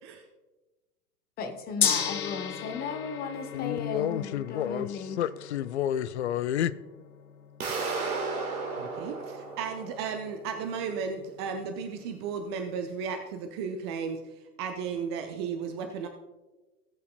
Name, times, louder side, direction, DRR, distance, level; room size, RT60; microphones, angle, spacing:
voice 1, 1.4-5.2, left 5 dB, 20° left, 0.9 m, -35 dB
Gong, 1.8-12.0, left 7 dB, 70° left, 0.9 m, -37 dB
voice 2, 3.5-4.9 5.2-6.7, left 11 dB, 50° left, 0.5 m, -30 dB
sound 1, 7.6-10.4, right 4 dB, 65° right, 1.8 m, -34 dB
voice 3, 8.8-14.2 14.6-16.1, right 6 dB, 20° right, 0.4 m, -34 dB
18.0 x 8.3 x 2.3 m
figure-of-eight pair, 95°, 46 cm